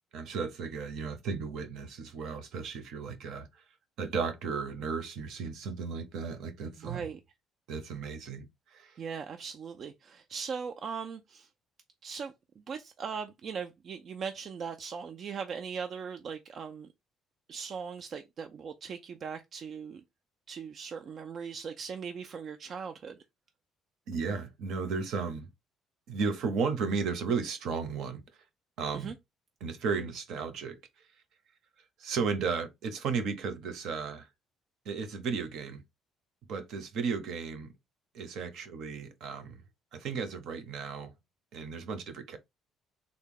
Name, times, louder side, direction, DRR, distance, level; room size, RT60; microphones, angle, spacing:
voice 1, 0.1-3.6 4.0-7.1 7.7-9.0 24.1-25.5 26.1-28.2 28.8-29.1 29.6-30.8 32.0-34.3 34.8-35.8 36.5-37.7 38.1-39.6 39.9-41.1 41.5-42.4, right 5 dB, 60° right, 0.7 m, -34 dB
voice 2, 6.8-7.2 9.0-11.5 12.0-16.9 17.5-20.0 20.5-23.2 28.9-29.1, right 6 dB, 35° right, 0.3 m, -39 dB
3.5 x 2.2 x 3.7 m
cardioid pair, 170°, 0 cm